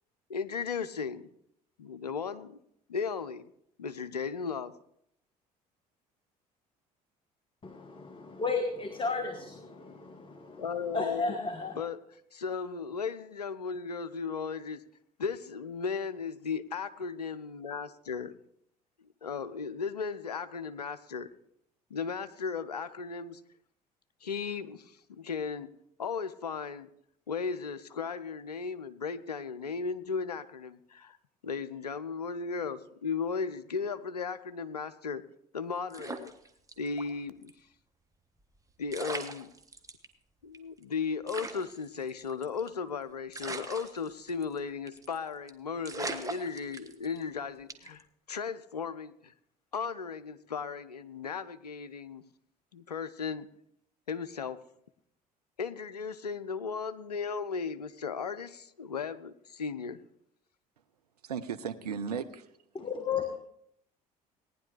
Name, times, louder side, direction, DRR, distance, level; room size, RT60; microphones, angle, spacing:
voice 1, 0.3-1.3 1.8-2.6 2.9-3.4 3.8-4.7 10.6-11.4 11.8-12.0 12.3-14.8 15.2-18.3 19.2-21.3 21.9-23.4 24.2-25.7 26.0-26.9 27.3-31.2 31.4-35.2 35.5-36.3 36.8-37.5 38.8-39.5 40.4-48.0 48.3-49.3 49.7-52.2 52.7-53.5 54.1-54.6 55.6-60.0, left 5 dB, 85° left, 13 dB, 0.5 m, -36 dB
voice 2, 7.6-10.7 10.9-11.8 62.7-63.4, left 4 dB, 25° left, 6 dB, 1.4 m, -34 dB
sound 1, 35.9-37.1 37.4-37.5 38.5-38.6 38.9-40.1 40.5-40.6 40.8-40.9 41.3-42.8 43.3-44.6 44.9-45.2 45.5-45.6 45.8-47.2 47.7-48.0, right 3 dB, 15° right, 1.3 m, -40 dB
voice 3, 61.2-62.5, right 6 dB, 85° right, 9 dB, 0.7 m, -35 dB
18.0 x 10.0 x 3.3 m, 0.72 s
figure-of-eight pair, 55°, 20 cm